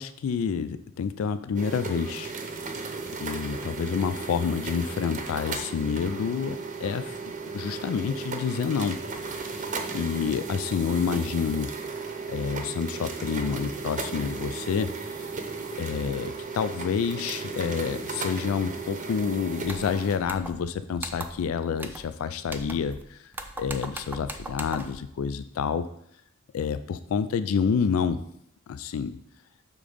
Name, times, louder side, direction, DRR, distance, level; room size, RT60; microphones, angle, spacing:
voice 1, 0.0-2.3 3.2-7.2 7.5-9.0 9.6-9.7 9.9-11.7 12.3-15.3 15.8-23.2 23.6-25.8 26.5-28.2 28.7-29.2, left 6 dB, 70° left, 12 dB, 0.3 m, -28 dB
sound 1, 1.5-20.2, right 4 dB, 35° right, 0.7 m, -35 dB
sound 2, 19.6-19.9 20.3-20.7 21.0-21.5 21.8-22.1 22.4-23.0 23.3-25.0, right 2 dB, 10° right, 0.4 m, -39 dB
6.8 x 3.7 x 5.0 m, 0.72 s
head